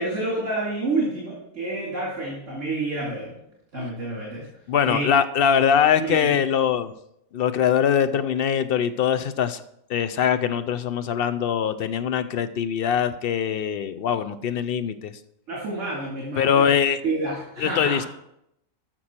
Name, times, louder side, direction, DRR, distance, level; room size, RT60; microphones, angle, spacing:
voice 1, 0.0-3.4 3.7-4.4 4.8-5.1 5.9-6.3 15.5-16.7 17.0-18.1, right 2 dB, 60° right, -5 dB, 2.7 m, -28 dB
voice 2, 4.7-6.9 7.3-9.6 9.9-15.1 16.4-17.0 17.6-18.1, left 8 dB, 60° left, 12 dB, 0.6 m, -22 dB
13.5 x 6.2 x 4.3 m, 0.79 s
omnidirectional pair, 1.4 m